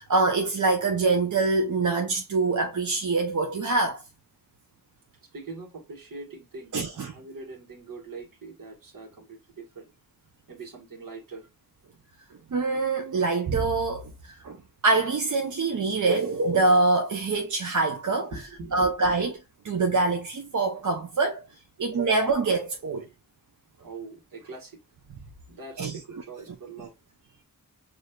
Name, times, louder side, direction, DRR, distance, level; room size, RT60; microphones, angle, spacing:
voice 1, 0.0-4.0 6.7-7.1 12.5-14.6 14.8-18.3 18.7-21.4 21.8-23.1 25.8-26.2, right 3 dB, 60° right, 0.6 m, -25 dB
voice 2, 5.3-9.9 10.5-11.5 18.3-18.9 23.8-24.8 25.5-26.9, right 3 dB, 80° right, 1.4 m, -42 dB
6.0 x 2.5 x 2.2 m
wide cardioid pair, 85°, 33 cm